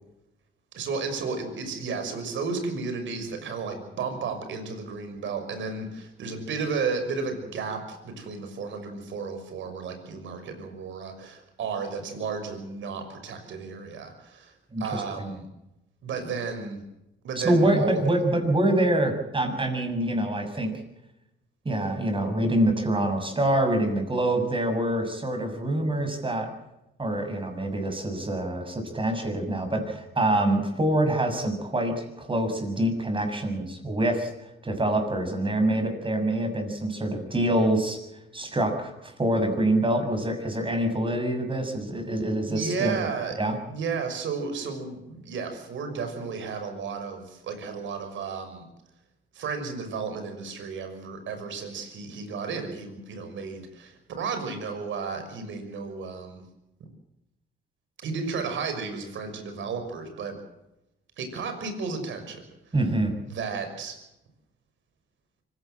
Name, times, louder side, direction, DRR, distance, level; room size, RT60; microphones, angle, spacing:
voice 1, 0.7-14.5 14.8-15.4 16.0-16.8 17.2-18.0 42.5-43.4 43.7-48.7 49.3-56.4 58.0-60.3 61.2-62.4 63.3-64.0, right 5 dB, 75° right, 7 dB, 6.2 m, -33 dB
voice 2, 14.7-15.3 17.4-20.8 21.6-26.5 27.0-34.3 34.6-38.0 38.3-43.0 43.3-43.6 62.7-63.2, right 1 dB, 25° right, 5 dB, 6.9 m, -25 dB
25.0 x 17.0 x 7.8 m, 0.88 s
cardioid pair, 90°, 20 cm